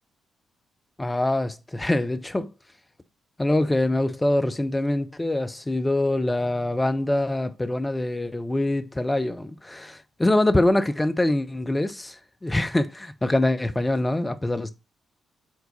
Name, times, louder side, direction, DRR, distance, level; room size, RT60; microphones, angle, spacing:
voice 1, 1.0-2.5 3.4-14.7, left 1 dB, 15° left, 0.7 m, -24 dB
4.7 x 3.9 x 5.6 m
figure-of-eight pair, 40°, 0 cm